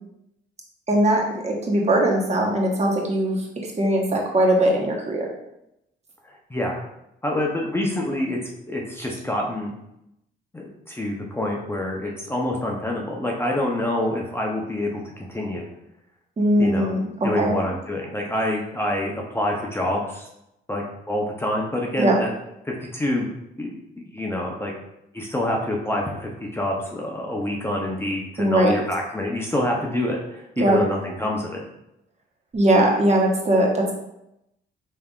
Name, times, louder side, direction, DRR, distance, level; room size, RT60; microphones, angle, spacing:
voice 1, 0.9-3.4 3.8-5.3 16.4-17.6 22.0-22.2 28.4-28.8 30.6-30.8 32.5-33.9, right 1 dB, 35° right, -1 dB, 1.1 m, -20 dB
voice 2, 6.2-6.8 7.2-8.4 8.7-9.7 10.5-15.7 16.6-16.9 17.2-20.2 20.7-22.3 22.6-23.3 23.6-24.7 25.1-31.6, left 1 dB, 10° left, -2 dB, 0.7 m, -27 dB
5.4 x 3.3 x 2.4 m, 0.83 s
cardioid pair, 90°, 20 cm